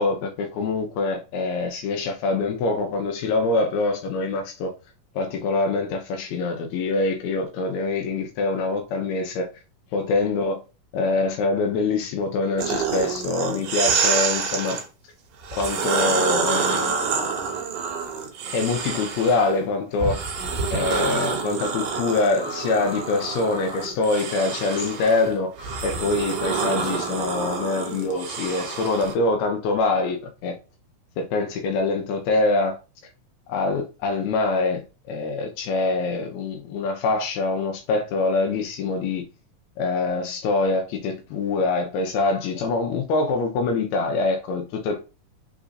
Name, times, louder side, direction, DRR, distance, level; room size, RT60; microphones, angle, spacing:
voice 1, 0.0-4.7 5.1-9.5 9.9-10.6 10.9-14.8 15.6-17.4 18.5-20.2 20.7-30.6 31.2-32.8 33.5-39.3 39.8-45.0, left 3 dB, 80° left, 1.6 m, -24 dB
sound 1, 12.6-14.8 15.4-19.5 20.0-29.1, right 5 dB, 75° right, 2.2 m, -27 dB
5.0 x 3.5 x 2.6 m
omnidirectional pair, 3.8 m